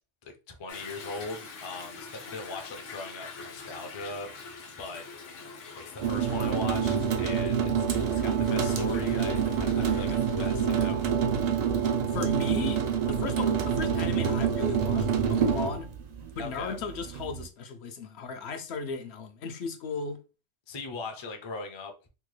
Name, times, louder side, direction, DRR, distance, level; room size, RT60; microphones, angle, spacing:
voice 1, 0.2-4.3 4.8-5.3 5.8-11.0 16.4-16.8 20.7-22.1, left 3 dB, 40° left, 0.4 m, -40 dB
Toilet flush / Drip / Trickle dribble, 0.7-10.8, left 4 dB, 85° left, 1.1 m, -45 dB
sound 1, 6.0-17.5, right 7 dB, 70° right, 0.4 m, -27 dB
voice 2, 12.1-12.8 13.1-15.9 16.4-20.2, left 5 dB, 65° left, 0.8 m, -36 dB
3.6 x 2.1 x 3.1 m
omnidirectional pair, 1.2 m